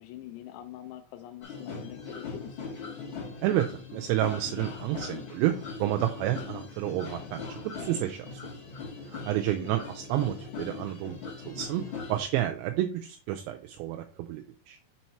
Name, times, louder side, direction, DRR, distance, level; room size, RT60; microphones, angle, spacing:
voice 1, 0.0-2.6 9.5-9.9, left 13 dB, 80° left, 6 dB, 2.5 m, -44 dB
sound 1, 1.4-12.2, left 4 dB, 55° left, 1.4 m, -40 dB
voice 2, 3.4-8.4 9.3-11.2 11.5-11.8 12.1-14.8, right 13 dB, 85° right, 5 dB, 2.7 m, -30 dB
6.3 x 4.5 x 4.3 m, 0.40 s
omnidirectional pair, 5.3 m